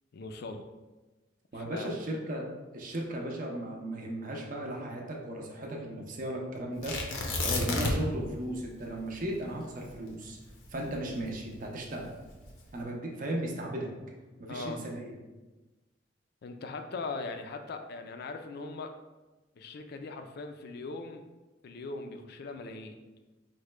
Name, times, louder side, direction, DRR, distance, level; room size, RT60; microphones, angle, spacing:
voice 1, 0.1-0.6 1.5-1.9 14.5-14.8 16.4-18.9 19.6-21.2 21.6-23.0, left 3 dB, 55° left, 6 dB, 0.4 m, -40 dB
voice 2, 1.5-2.5 2.7-7.0 7.4-10.4 10.7-12.1 12.7-13.9 14.4-15.2, right 1 dB, 45° right, 0 dB, 0.6 m, -36 dB
Tearing, 6.8-8.2 8.5-8.6 9.1-11.5 12.2-12.7, left 2 dB, 90° left, 0.7 m, -31 dB
4.7 x 2.1 x 3.1 m, 1.2 s
head